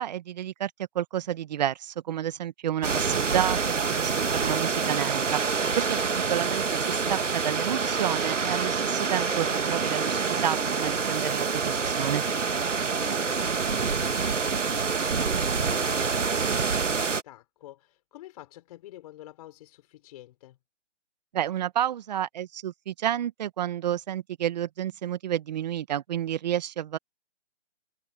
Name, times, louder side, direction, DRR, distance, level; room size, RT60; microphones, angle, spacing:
voice 1, 0.0-12.2 21.3-27.0, right 11 dB, 35° right, 1.5 m, -30 dB
sound 1, 2.8-17.2, right 5 dB, 85° right, 1.8 m, -27 dB
voice 2, 6.3-6.6 12.9-20.6, left 14 dB, 30° left, 4.7 m, -48 dB
hypercardioid pair, 150°, 36 cm